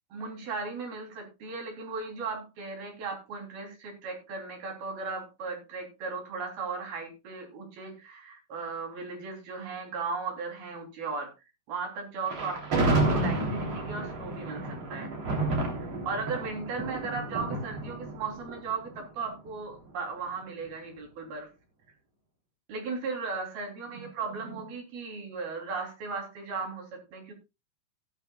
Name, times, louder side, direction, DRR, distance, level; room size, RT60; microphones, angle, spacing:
voice 1, 0.1-11.3 11.7-15.1 16.0-21.5 22.7-27.3, right 4 dB, 50° right, 2 dB, 4.9 m, -36 dB
Thunder, 12.3-19.5, right 2 dB, 35° right, 3.6 m, -30 dB
16.5 x 12.0 x 2.3 m, 0.26 s
omnidirectional pair, 5.7 m